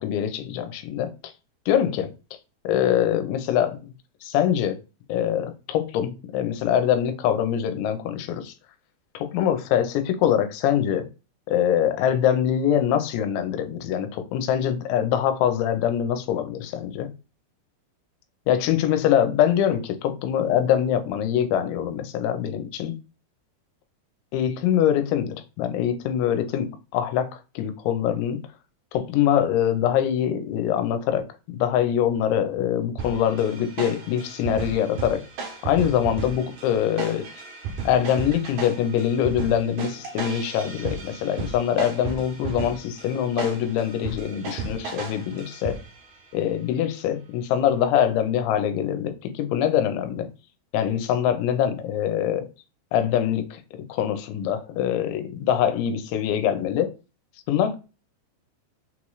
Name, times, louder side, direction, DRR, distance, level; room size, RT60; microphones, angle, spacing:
voice 1, 0.0-1.3 1.7-2.1 2.6-3.9 4.2-4.8 5.1-8.5 9.1-11.1 11.5-17.1 18.5-22.9 24.3-28.4 28.9-31.3 31.5-35.2 35.6-37.3 37.8-45.8 46.3-50.3 50.7-52.5 52.9-53.6 53.9-56.9 57.5-57.8, left 9 dB, 90° left, 3.0 m, -24 dB
sound 1, 33.0-46.1, right 5 dB, 70° right, 1.9 m, -35 dB
6.4 x 3.1 x 2.3 m
omnidirectional pair, 5.2 m